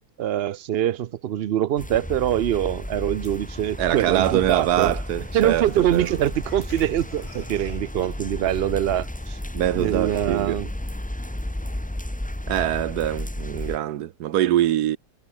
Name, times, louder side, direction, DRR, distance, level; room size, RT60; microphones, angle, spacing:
voice 1, 0.2-4.9 5.3-9.4 9.8-10.7, right 11 dB, 60° right, 0.6 m, -24 dB
sound 1, 1.8-13.8, left 1 dB, 5° left, 1.0 m, -33 dB
voice 2, 3.8-6.1 9.5-10.6 12.5-15.0, right 12 dB, 90° right, 1.3 m, -23 dB
sound 2, 5.5-8.5, left 2 dB, 70° left, 6.6 m, -47 dB
omnidirectional pair, 1.6 m